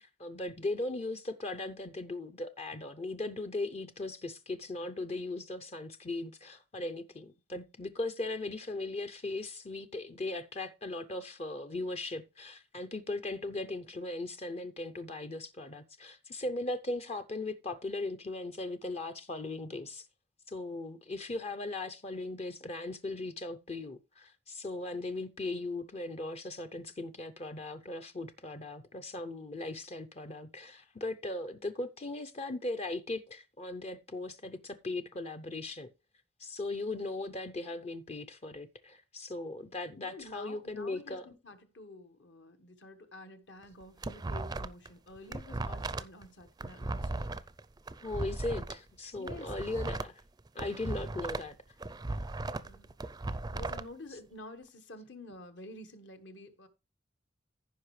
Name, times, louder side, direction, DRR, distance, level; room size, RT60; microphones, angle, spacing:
voice 1, 0.0-20.1 20.5-35.9 36.4-41.3 48.0-50.2 50.5-51.6, left 2 dB, 35° left, 0.6 m, -38 dB
voice 2, 40.0-47.2 49.2-49.6 52.5-52.9 53.5-56.7, left 2 dB, 65° left, 1.4 m, -49 dB
sound 1, 43.6-44.9 45.2-48.8 49.2-51.5 51.8-53.8, right 2 dB, 20° right, 0.4 m, -37 dB
14.5 x 5.5 x 3.2 m
head